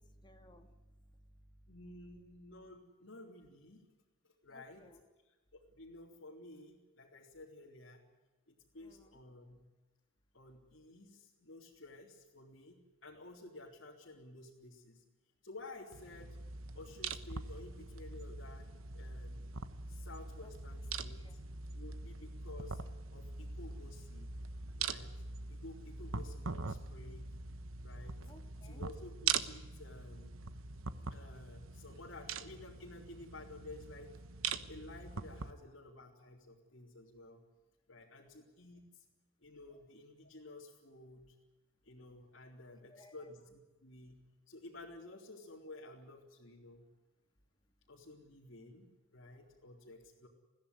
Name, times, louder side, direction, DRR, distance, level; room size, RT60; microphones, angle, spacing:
voice 1, 0.0-1.7 4.5-5.0 8.8-9.2 20.4-20.5 21.0-21.4 28.3-28.9 38.1-38.3 39.7-39.8 42.8-43.1, left 1 dB, 20° left, 4 dB, 2.0 m, -61 dB
voice 2, 1.7-3.9 4.2-4.9 5.2-8.0 8.5-9.6 10.3-15.0 15.4-16.4 16.7-18.7 18.9-19.5 19.9-21.4 21.7-22.8 23.1-24.3 24.8-25.2 25.5-27.4 27.8-28.2 28.6-30.4 31.1-34.1 34.7-37.4 37.9-39.0 39.4-41.3 41.8-46.9 47.9-50.3, left 2 dB, 70° left, -4 dB, 3.4 m, -53 dB
sound 1, 15.9-35.5, right 5 dB, 90° right, 1.1 m, -42 dB
21.5 x 16.0 x 9.5 m, 1.2 s
head